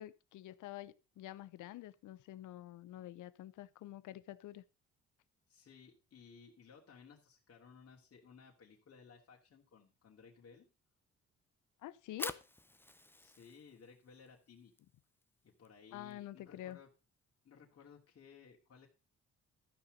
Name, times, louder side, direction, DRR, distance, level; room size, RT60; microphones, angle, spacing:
voice 1, 0.0-4.6 11.8-12.4 15.9-16.8, left 14 dB, 80° left, 0.8 m, -48 dB
voice 2, 5.5-10.7 13.2-14.7 15.4-16.9 17.4-18.9, left 6 dB, 50° left, 2.8 m, -59 dB
Fire, 11.9-18.1, left 2 dB, 5° left, 0.7 m, -50 dB
13.0 x 6.0 x 5.2 m
cardioid pair, 90°, 30 cm